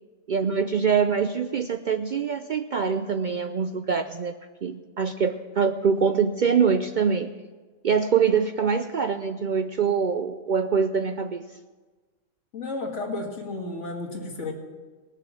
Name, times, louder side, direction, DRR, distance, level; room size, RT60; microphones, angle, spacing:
voice 1, 0.3-4.3 4.6-7.3 7.8-11.5, right 6 dB, 55° right, 7 dB, 0.5 m, -24 dB
voice 2, 12.5-14.5, left 2 dB, 75° left, 0 dB, 2.2 m, -32 dB
19.5 x 6.7 x 6.2 m, 1.3 s
omnidirectional pair, 1.3 m